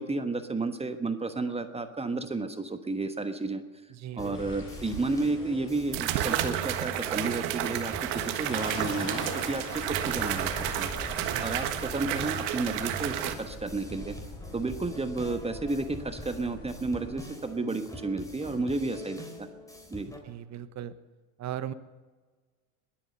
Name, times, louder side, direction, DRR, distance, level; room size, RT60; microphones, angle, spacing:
voice 1, 0.0-3.6 4.2-10.9 11.4-14.2 14.5-19.5 19.9-20.1, right 3 dB, 15° right, 8 dB, 1.2 m, -32 dB
voice 2, 3.9-4.4 11.2-11.6 20.2-21.0 21.4-21.7, right 11 dB, 40° right, 14 dB, 1.1 m, -38 dB
sound 1, 4.2-20.2, equal, 10° left, 3.6 m, -45 dB
sound 2, 4.3-17.2, left 1 dB, 30° left, 6.2 m, -43 dB
sound 3, 4.9-5.0 5.9-13.3, right 11 dB, 70° right, 1.5 m, -31 dB
21.0 x 8.8 x 6.7 m, 1.4 s
hypercardioid pair, 85°, 41 cm